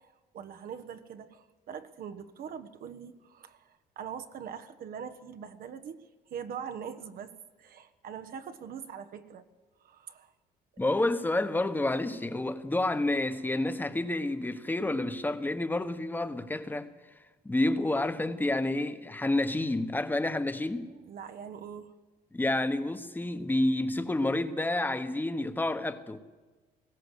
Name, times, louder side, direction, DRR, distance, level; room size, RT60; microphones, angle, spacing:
voice 1, 0.0-6.0 6.3-7.3 7.6-9.4 9.8-10.3 20.9-21.9, right 7 dB, 60° right, 1.2 m, -42 dB
voice 2, 10.8-16.9 17.4-20.9 22.3-26.2, left 2 dB, 10° left, 1.3 m, -29 dB
20.0 x 16.5 x 8.3 m
cardioid pair, 110°, 17 cm